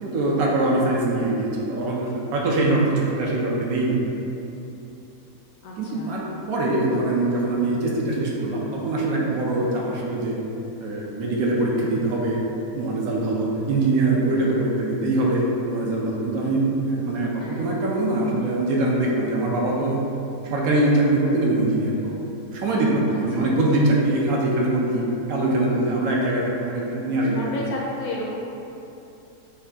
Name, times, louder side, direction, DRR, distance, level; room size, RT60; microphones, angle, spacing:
voice 1, 0.0-4.0 5.8-10.4 10.8-12.4 12.7-20.0 20.4-22.2 22.5-25.0 25.3-27.5, right 2 dB, 70° right, -3 dB, 1.0 m, -23 dB
voice 2, 5.6-6.1 7.3-7.5 17.4-17.7 23.1-23.5 25.9-26.0 27.3-28.4, left 2 dB, 70° left, -4 dB, 1.0 m, -33 dB
5.6 x 2.2 x 2.7 m, 2.9 s
omnidirectional pair, 1.7 m